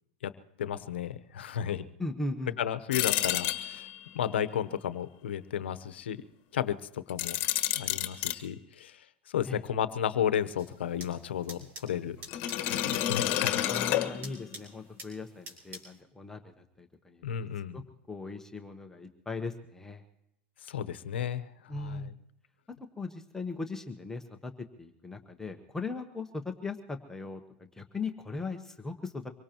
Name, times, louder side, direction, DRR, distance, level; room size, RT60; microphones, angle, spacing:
voice 1, 0.6-1.8 2.6-3.9 4.1-6.2 6.5-7.4 7.8-8.9 9.3-12.2 12.7-13.6 17.2-17.8 20.7-21.4 21.7-22.0, left 9 dB, 85° left, 12 dB, 0.9 m, -33 dB
voice 2, 2.0-2.5 9.4-9.6 13.7-17.5 17.7-20.0 21.7-22.1 23.0-24.5 24.8-29.3, left 3 dB, 10° left, 4 dB, 1.1 m, -39 dB
sound 1, 2.9-4.1 7.1-8.4 12.3-14.6, left 13 dB, 45° left, 1.5 m, -30 dB
sound 2, 10.6-16.0, right 1 dB, 35° right, 4.0 m, -49 dB
24.5 x 18.0 x 3.0 m, 0.79 s
hypercardioid pair, 125°, 6 cm